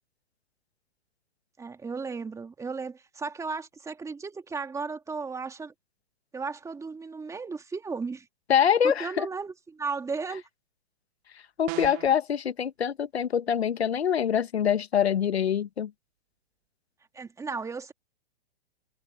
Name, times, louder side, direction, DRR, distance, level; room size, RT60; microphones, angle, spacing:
voice 1, 1.6-5.7 6.3-8.3 8.8-10.4 17.1-17.9, right 4 dB, 10° right, 2.1 m, -35 dB
voice 2, 8.5-9.3 11.6-15.9, left 8 dB, 85° left, 1.3 m, -25 dB
sound 1, 11.7-12.2, right 28 dB, 40° right, 3.0 m, -36 dB
hypercardioid pair, 130°, 31 cm